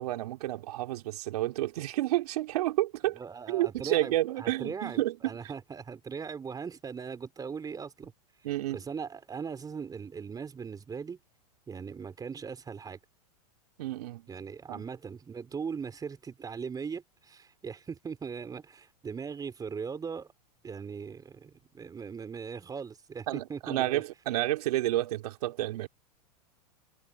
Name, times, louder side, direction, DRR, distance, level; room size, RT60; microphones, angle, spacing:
voice 1, 0.0-3.2 3.5-5.4 8.4-8.8 13.8-14.3 14.7-14.8 23.3-25.9, right 15 dB, 65° right, 3.2 m, -30 dB
voice 2, 3.2-8.1 8.7-11.2 11.7-13.0 14.3-20.3 20.6-24.0, right 6 dB, 20° right, 3.9 m, -39 dB
hypercardioid pair, 110°, 21 cm